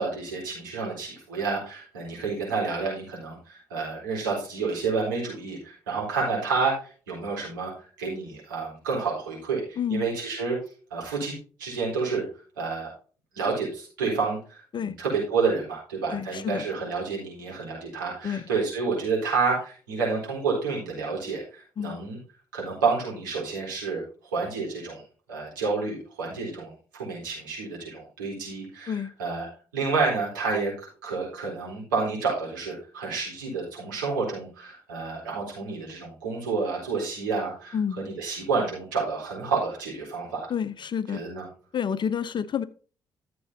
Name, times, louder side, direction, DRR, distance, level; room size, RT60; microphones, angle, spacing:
voice 1, 0.0-7.7 8.0-10.6 10.9-11.3 11.6-12.3 12.6-12.9 13.3-22.2 22.5-24.0 24.3-25.0 25.3-40.5 41.1-41.5, right 4 dB, 85° right, -3 dB, 4.2 m, -29 dB
voice 2, 9.8-10.1 14.7-15.0 16.1-16.6 18.2-18.4 21.8-22.0 28.9-29.1 37.7-38.0 40.5-41.2 41.7-42.6, left 7 dB, 50° left, 15 dB, 0.9 m, -29 dB
13.0 x 7.8 x 2.8 m, 0.38 s
hypercardioid pair, 45°, 10 cm